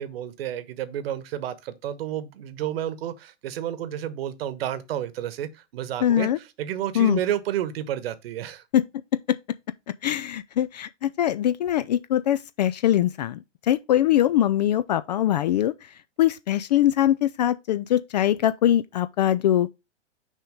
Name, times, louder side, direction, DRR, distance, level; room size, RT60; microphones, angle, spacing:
voice 1, 0.0-8.6, right 11 dB, 50° right, 1.2 m, -31 dB
voice 2, 6.0-6.4 7.0-7.2 8.7-8.8 9.3-9.4 10.0-13.4 13.7-15.7 16.2-19.7, left 11 dB, 35° left, 0.4 m, -22 dB
6.3 x 4.9 x 3.6 m
figure-of-eight pair, 110°, 37 cm